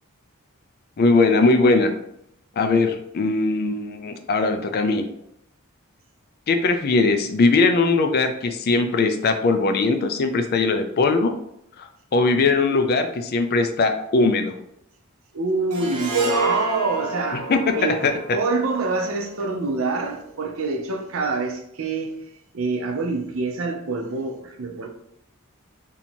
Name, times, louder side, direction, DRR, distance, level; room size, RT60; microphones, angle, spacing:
voice 1, 1.0-1.9 2.6-5.1 6.5-11.3 11.8-14.5 17.5-18.4, left 3 dB, 45° left, 0.4 m, -20 dB
voice 2, 15.3-17.5 17.7-18.0 18.3-22.2 22.5-24.9, right 3 dB, 60° right, 0.6 m, -26 dB
Harp, 15.7-20.1, right 2 dB, 85° right, 0.9 m, -29 dB
2.8 x 2.7 x 4.3 m
head